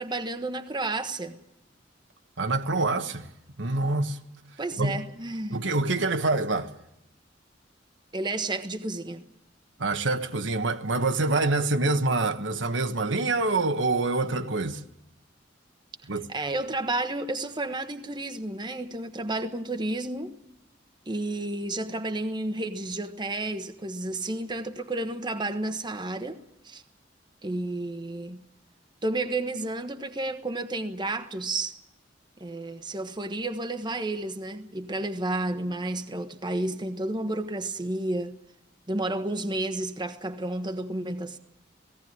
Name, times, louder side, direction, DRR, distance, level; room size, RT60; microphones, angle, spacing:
voice 1, 0.0-1.4 4.6-5.6 8.1-9.2 16.3-20.4 21.1-26.4 26.6-26.8 27.4-28.4 29.0-31.8 32.4-38.3 38.9-41.4, right 2 dB, 25° right, 1.2 m, -31 dB
voice 2, 2.4-3.3 3.6-4.2 4.8-4.9 5.5-6.7 9.8-14.8 16.1-16.3, right 2 dB, 80° right, 1.4 m, -26 dB
17.5 x 17.0 x 9.5 m
head